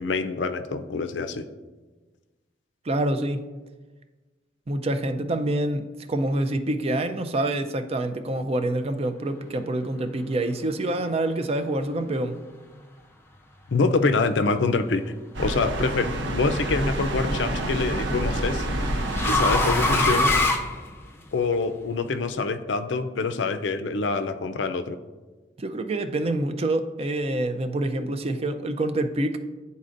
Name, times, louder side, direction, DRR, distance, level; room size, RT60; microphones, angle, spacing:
voice 1, 0.0-1.5 13.7-15.0 15.4-18.7 19.2-20.3 21.3-25.0, left 4 dB, 75° left, 9 dB, 0.5 m, -25 dB
voice 2, 2.9-3.4 4.7-12.4 25.6-29.4, right 1 dB, 35° right, 9 dB, 0.4 m, -26 dB
sound 1, 15.3-20.4, right 1 dB, 75° right, 0.7 m, -28 dB
sound 2, 15.5-16.0 17.4-21.4, left 2 dB, 15° left, 0.6 m, -25 dB
11.0 x 4.1 x 2.5 m, 1.3 s
head